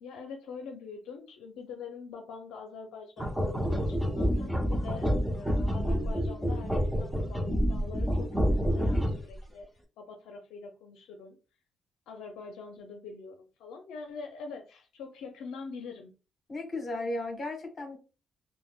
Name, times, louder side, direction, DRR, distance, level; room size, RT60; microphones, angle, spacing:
voice 1, 0.0-9.7 10.0-11.4 12.1-16.1, left 5 dB, 90° left, 0.5 m, -44 dB
sound 1, 3.2-9.4, equal, 5° right, 0.6 m, -28 dB
voice 2, 16.5-18.0, left 2 dB, 40° left, 1.2 m, -35 dB
3.4 x 2.1 x 2.3 m
cardioid pair, 90°, 0 cm